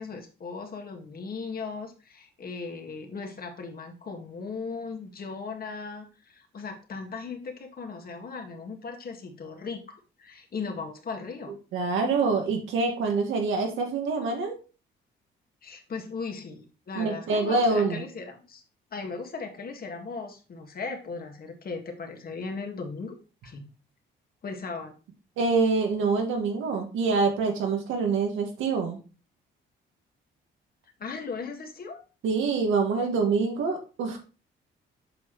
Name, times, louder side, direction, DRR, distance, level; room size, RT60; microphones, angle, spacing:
voice 1, 0.0-11.6 15.6-18.6 18.9-23.1 23.4-23.7 24.4-24.9 31.0-32.0, left 4 dB, 50° left, 4 dB, 1.8 m, -37 dB
voice 2, 11.7-14.5 17.0-18.0 25.4-29.0 32.2-34.2, right 4 dB, 85° right, 3 dB, 1.8 m, -25 dB
7.5 x 5.8 x 3.1 m, 0.34 s
cardioid pair, 90°, 20 cm